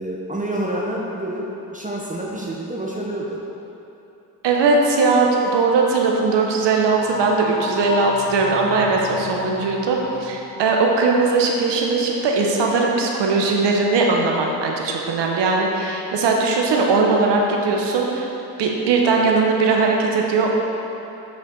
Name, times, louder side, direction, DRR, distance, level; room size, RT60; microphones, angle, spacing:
voice 1, 0.0-3.4, right 1 dB, 15° right, -3 dB, 1.0 m, -28 dB
voice 2, 4.4-18.3 18.6-20.5, right 3 dB, 65° right, 0 dB, 1.0 m, -19 dB
sound 1, 6.8-10.8, left 4 dB, 65° left, 0.9 m, -31 dB
8.3 x 4.6 x 3.9 m, 2.9 s
hypercardioid pair, 50°, 46 cm